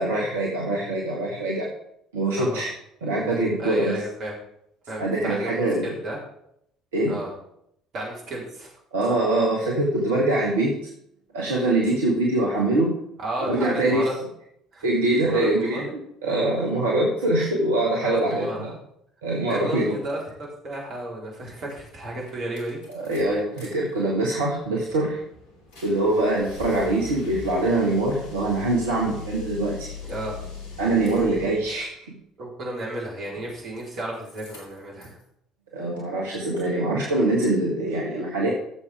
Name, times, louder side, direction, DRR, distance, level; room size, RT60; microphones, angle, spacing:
voice 1, 0.0-1.7 2.1-2.7 3.0-4.0 5.0-5.9 6.9-7.2 8.9-10.8 11.3-13.0 13.4-14.1 14.8-18.7 19.2-20.0 22.9-25.2 25.8-29.9 30.8-32.2 35.7-38.5, right 2 dB, 75° right, -3 dB, 1.6 m, -23 dB
voice 2, 3.6-4.3 4.9-6.2 7.1-7.3 7.9-8.7 13.2-14.1 14.7-14.9 15.3-15.8 18.0-18.8 19.5-20.2 20.6-22.8 30.0-30.4 32.4-35.2, right 1 dB, 50° right, -3 dB, 3.9 m, -33 dB
sound 1, 21.7-21.8 22.1-23.7 24.0-31.8 33.3-34.0 34.2-35.2, left 4 dB, 65° left, 3.0 m, -41 dB
16.0 x 7.3 x 3.5 m, 0.74 s
figure-of-eight pair, 55°, 0 cm